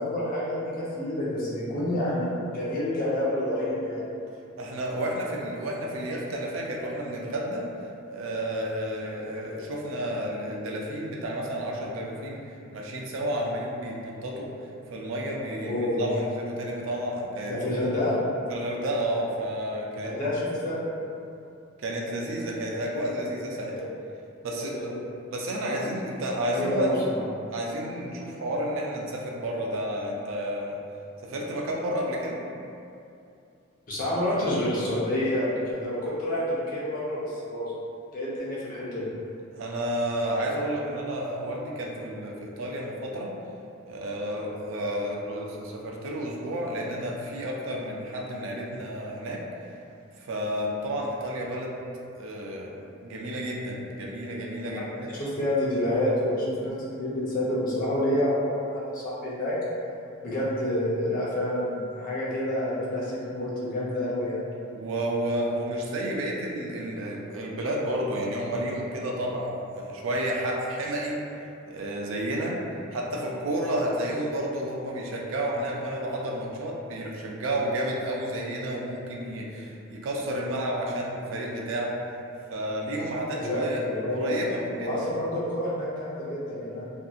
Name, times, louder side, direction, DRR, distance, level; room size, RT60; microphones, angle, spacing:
voice 1, 0.0-4.0 15.6-16.2 17.5-18.1 20.0-20.8 23.7-23.8 24.5-25.0 25.6-25.8 26.5-26.9 27.1-27.2 33.9-37.7 38.1-39.1 55.1-59.6 60.2-64.4 83.4-84.3 84.8-86.9, left 1 dB, 45° left, -7 dB, 0.7 m, -28 dB
voice 2, 4.6-7.7 8.1-12.4 12.7-14.5 14.9-17.5 18.5-20.1 21.8-23.8 24.4-24.9 25.3-27.0 27.5-30.8 31.2-32.4 39.5-43.3 43.9-49.7 50.2-51.8 52.2-52.7 53.0-55.1 64.7-71.2 71.7-72.6 72.9-82.0 82.5-83.8 84.1-85.0, right 1 dB, 70° right, -2 dB, 0.4 m, -31 dB
2.7 x 2.5 x 2.3 m, 2.6 s
head